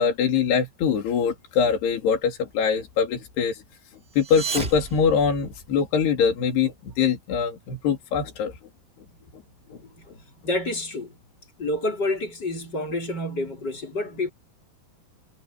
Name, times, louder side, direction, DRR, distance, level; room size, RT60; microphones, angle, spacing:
voice 1, 0.0-3.6 4.2-8.5, left 6 dB, 80° left, 5.4 m, -23 dB
sound 1, 4.1-6.0, right 3 dB, 20° right, 2.4 m, -33 dB
voice 2, 9.7-11.2 11.6-14.3, left 1 dB, 25° left, 4.6 m, -29 dB
omnidirectional pair, 4.7 m